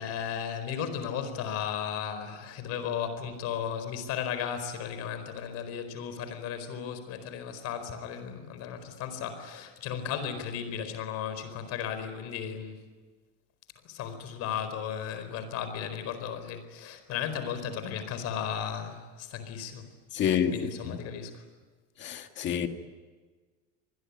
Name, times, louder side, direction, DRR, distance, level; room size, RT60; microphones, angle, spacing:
voice 1, 0.0-12.8 13.8-19.9 20.1-21.4, left 8 dB, 50° left, 4.6 m, -35 dB
voice 2, 20.1-21.0 22.0-22.7, left 8 dB, 35° left, 2.0 m, -28 dB
26.5 x 21.0 x 9.9 m
cardioid pair, 175°, 32 cm